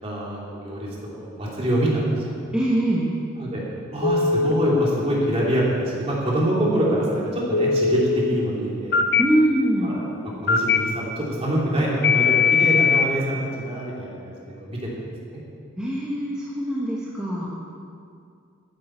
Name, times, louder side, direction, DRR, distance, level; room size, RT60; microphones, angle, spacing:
voice 1, 0.0-2.4 3.3-3.6 3.9-9.0 9.8-10.0 10.4-14.8 15.3-15.4, right 1 dB, 30° right, -5 dB, 2.7 m, -25 dB
voice 2, 2.5-3.1 9.2-10.0 15.8-17.5, right 1 dB, 5° right, -7 dB, 1.2 m, -23 dB
Telephone, 4.0-4.5 7.5-8.0 8.9-9.2 10.5-10.8 12.0-13.1, left 5 dB, 50° left, 0.6 m, -19 dB
13.5 x 10.5 x 4.5 m, 2.4 s
head